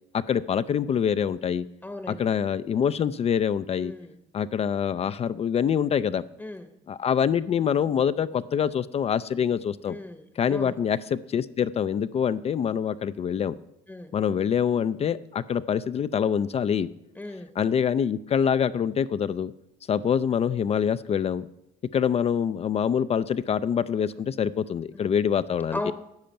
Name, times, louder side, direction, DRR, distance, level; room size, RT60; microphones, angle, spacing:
voice 1, 0.1-1.6 2.1-3.9 4.3-6.2 6.9-10.0 10.4-13.5 14.1-16.9 17.6-19.5 19.9-21.5 21.9-25.9, left 8 dB, 35° left, 14 dB, 0.4 m, -25 dB
voice 2, 1.8-2.2 3.8-4.1 6.4-6.6 9.9-10.8 13.9-14.1 17.2-17.5 25.7-25.9, left 1 dB, 10° left, 7 dB, 0.9 m, -36 dB
10.5 x 5.7 x 8.7 m, 0.82 s
cardioid pair, 110°, 17 cm